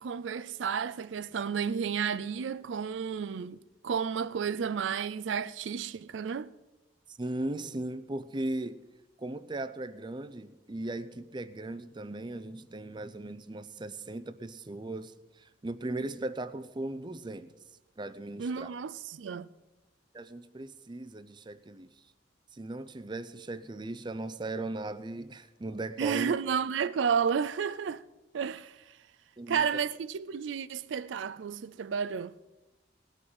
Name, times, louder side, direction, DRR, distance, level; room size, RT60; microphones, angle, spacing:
voice 1, 0.0-6.5 18.4-19.5 26.0-28.0 28.3-29.0 29.5-32.4, right 7 dB, 85° right, 0.4 m, -32 dB
voice 2, 7.2-8.8 9.2-15.1 15.4-17.5 18.0-18.7 20.1-21.9 22.5-26.3 29.4-29.6, right 2 dB, 25° right, 0.5 m, -37 dB
18.5 x 6.2 x 7.7 m
head